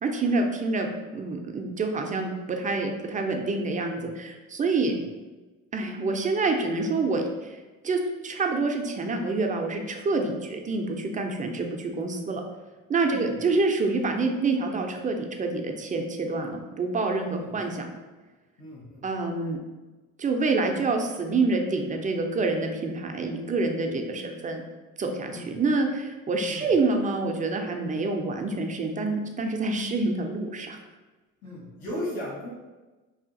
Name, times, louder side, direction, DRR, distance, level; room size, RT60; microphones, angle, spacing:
voice 1, 0.0-0.9 1.1-4.9 5.7-12.4 12.9-18.0 19.0-19.6 20.2-24.6 25.0-30.8, right 3 dB, 20° right, 3 dB, 0.4 m, -27 dB
voice 2, 17.2-17.6 18.6-19.0 25.3-25.5 26.5-26.7 31.4-32.5, left 1 dB, 70° left, -6 dB, 1.3 m, -36 dB
2.7 x 2.4 x 2.6 m, 1.2 s
supercardioid pair, 65°, 38 cm